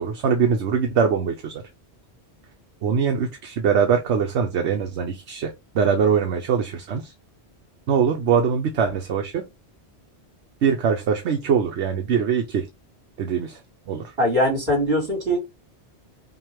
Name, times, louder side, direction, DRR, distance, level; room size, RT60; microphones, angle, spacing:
voice 1, 0.0-1.6 2.8-7.1 7.9-9.4 10.6-12.7 13.2-13.6 13.9-14.1, right 6 dB, 80° right, 1.1 m, -22 dB
voice 2, 14.2-15.4, equal, 60° right, 3.0 m, -21 dB
5.9 x 2.4 x 3.5 m
omnidirectional pair, 1.2 m